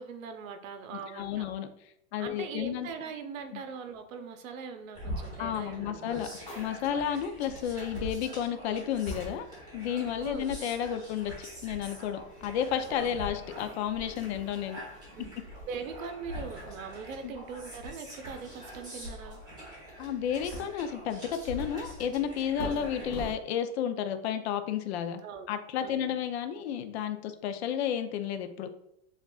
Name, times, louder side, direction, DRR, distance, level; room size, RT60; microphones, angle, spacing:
voice 1, 0.0-1.5 2.2-6.3 10.2-10.5 12.9-13.2 15.1-15.3 15.6-19.4 22.6-22.8 25.2-25.5 25.8-26.2, right 6 dB, 80° right, 7 dB, 0.9 m, -41 dB
voice 2, 0.9-1.7 2.1-2.9 3.5-3.6 5.4-6.3 6.6-9.5 9.7-14.8 17.2-17.3 20.0-25.2 25.5-28.7, left 9 dB, 55° left, 9 dB, 0.5 m, -32 dB
sound 1, 4.9-23.1, equal, 10° right, 1.0 m, -44 dB
sound 2, 6.3-23.3, left 1 dB, 15° left, 0.9 m, -47 dB
7.2 x 2.5 x 2.3 m, 0.78 s
supercardioid pair, 165°, 40 cm